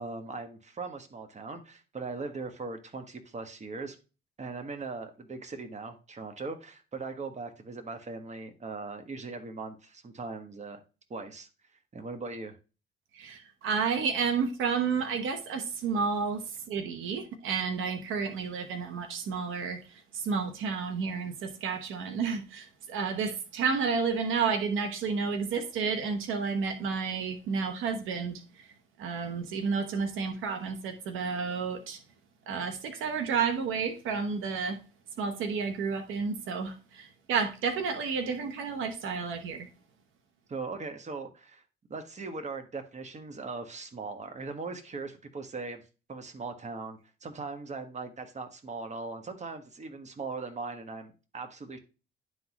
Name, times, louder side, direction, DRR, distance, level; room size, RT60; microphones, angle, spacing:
voice 1, 0.0-4.0 4.4-10.8 11.1-11.5 11.9-12.6 40.5-41.6 41.9-45.8 46.1-51.8, right 4 dB, 35° right, 1.3 m, -39 dB
voice 2, 13.1-28.7 29.0-32.0 32.5-34.8 35.2-39.7, right 5 dB, 85° right, 1.0 m, -31 dB
11.0 x 4.0 x 3.0 m
cardioid pair, 90°, 20 cm